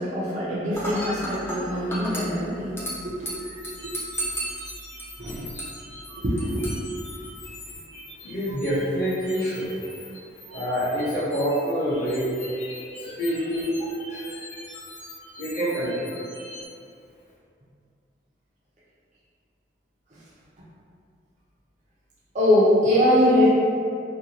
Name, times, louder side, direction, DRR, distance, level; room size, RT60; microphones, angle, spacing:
voice 1, 0.0-3.3 3.8-3.9 5.2-5.4 6.2-6.7 22.3-23.5, left 1 dB, 40° right, -8 dB, 0.5 m, -22 dB
Dishes pots and pans / Glass, 0.7-7.7, right 1 dB, 15° left, 0.3 m, -35 dB
sound 1, 3.4-16.7, left 1 dB, 85° left, 0.8 m, -43 dB
voice 2, 8.2-10.0 10.5-14.4 15.4-16.2, equal, 45° left, -11 dB, 0.8 m, -27 dB
2.6 x 2.2 x 2.8 m, 2.4 s
head